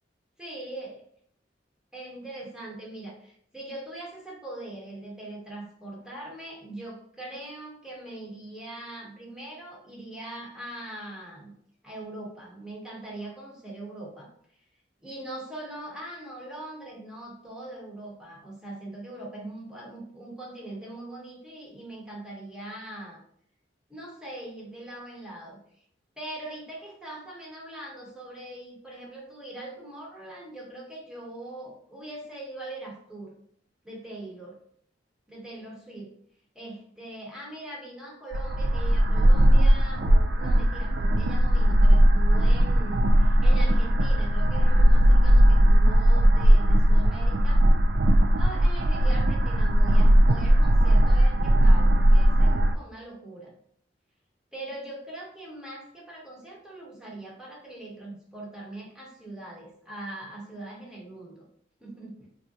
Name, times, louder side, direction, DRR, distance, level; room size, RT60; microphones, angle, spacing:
voice 1, 0.4-1.0 1.9-11.5 11.8-14.3 15.0-23.2 23.9-25.6 26.2-33.3 33.8-34.6 35.3-36.1 36.5-47.7 48.3-53.5 54.5-61.5 61.8-62.3, right 1 dB, 5° right, -3 dB, 0.9 m, -41 dB
sound 1, 38.3-52.8, equal, 70° right, 0.3 m, -19 dB
4.2 x 2.4 x 2.7 m, 0.66 s
head